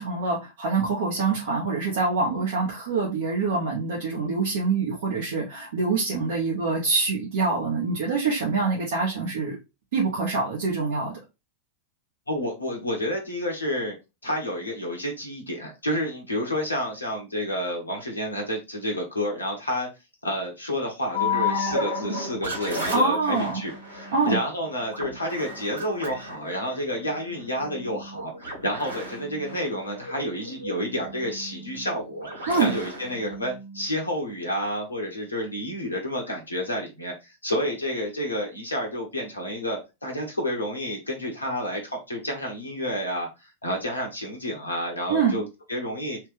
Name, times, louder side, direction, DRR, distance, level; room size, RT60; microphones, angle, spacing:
voice 1, 0.0-9.6 9.9-11.2 22.9-23.6 24.1-24.4 32.5-32.7 45.1-45.4, right 4 dB, 55° right, 1.1 m, -25 dB
voice 2, 12.3-13.9 14.2-19.9 20.2-46.2, equal, 80° left, 1.0 m, -30 dB
sound 1, 21.1-34.2, left 3 dB, 75° right, 1.9 m, -34 dB
3.4 x 3.2 x 3.3 m
figure-of-eight pair, 90°, 0 cm